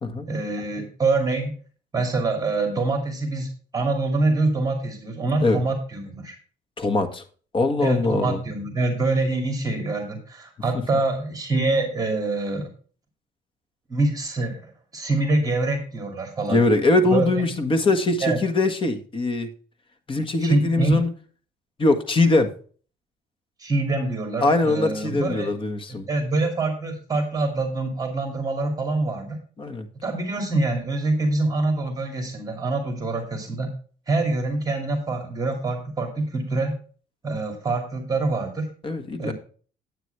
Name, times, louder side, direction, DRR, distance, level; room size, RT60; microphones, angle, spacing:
voice 1, 0.3-1.6 1.9-6.3 7.8-12.7 13.9-16.6 17.1-17.4 18.2-18.4 20.4-20.9 23.6-25.5 25.9-29.4 30.0-33.7 34.1-36.8 37.2-38.7 39.2-39.3, right 2 dB, 20° right, 4 dB, 2.4 m, -25 dB
voice 2, 6.8-7.2 7.5-8.4 10.7-10.8 16.5-19.5 20.1-21.1 21.8-22.5 24.4-26.1 29.6-29.9 38.8-39.3, left 2 dB, 30° left, 8 dB, 1.6 m, -22 dB
9.4 x 9.0 x 3.3 m, 0.41 s
cardioid pair, 110°, 17 cm